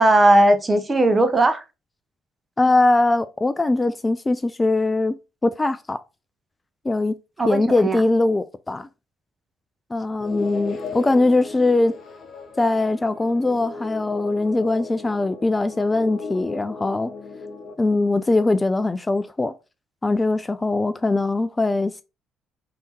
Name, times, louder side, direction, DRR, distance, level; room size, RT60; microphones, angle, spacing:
voice 1, 0.0-1.6 7.4-8.0, right 1 dB, 30° right, 0.9 m, -17 dB
voice 2, 2.6-5.1 5.4-6.0 6.8-7.1 7.5-8.9 9.9-11.9 12.6-17.1 17.8-19.5 20.0-22.0, left 2 dB, 20° left, 0.4 m, -21 dB
sound 1, 10.2-17.7, left 4 dB, 50° left, 0.9 m, -37 dB
3.5 x 2.9 x 4.2 m
hypercardioid pair, 50°, 0 cm